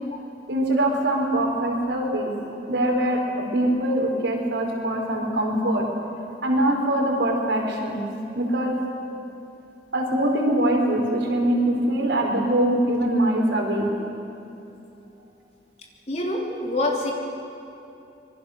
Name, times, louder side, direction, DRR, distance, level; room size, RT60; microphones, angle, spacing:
voice 1, 0.5-2.3 2.7-5.8 6.4-8.0 8.3-8.8 9.9-13.9, right 1 dB, 85° right, 0 dB, 4.6 m, -23 dB
voice 2, 16.1-17.1, left 1 dB, 40° left, -1 dB, 3.4 m, -25 dB
26.0 x 22.0 x 6.7 m, 2.8 s
head